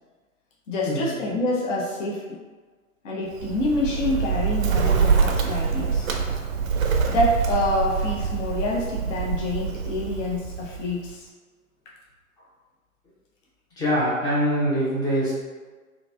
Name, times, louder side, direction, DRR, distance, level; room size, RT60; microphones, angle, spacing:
voice 1, 0.7-2.4 3.0-6.1 7.1-11.3, left 1 dB, 60° left, -3 dB, 0.7 m, -27 dB
Bird, 3.3-11.1, right 6 dB, 70° right, 0.5 m, -25 dB
voice 2, 13.8-15.3, equal, 10° left, -8 dB, 0.4 m, -23 dB
2.8 x 2.6 x 2.2 m, 1.4 s
figure-of-eight pair, 100°, 42 cm